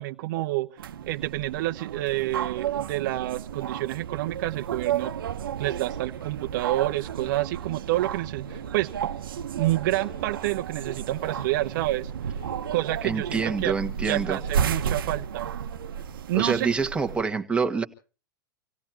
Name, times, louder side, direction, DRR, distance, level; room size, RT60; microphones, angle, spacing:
voice 1, 0.0-5.1 5.6-8.9 9.6-12.4 12.7-13.7 14.0-15.5 16.3-16.7, right 17 dB, 60° right, 0.8 m, -28 dB
sound 1, 0.8-17.2, right 8 dB, 80° right, 1.0 m, -33 dB
sound 2, 6.2-6.4 7.2-7.6 8.0-8.1 8.5-8.7 9.6-10.6 11.0-11.7 12.3-12.8 14.4-14.8 15.9-16.1 16.5-16.6, left 5 dB, 80° left, 7.7 m, -49 dB
voice 2, 13.0-14.4 16.3-17.8, right 5 dB, 10° right, 1.6 m, -26 dB
27.0 x 16.5 x 2.9 m
hypercardioid pair, 125°, 11 cm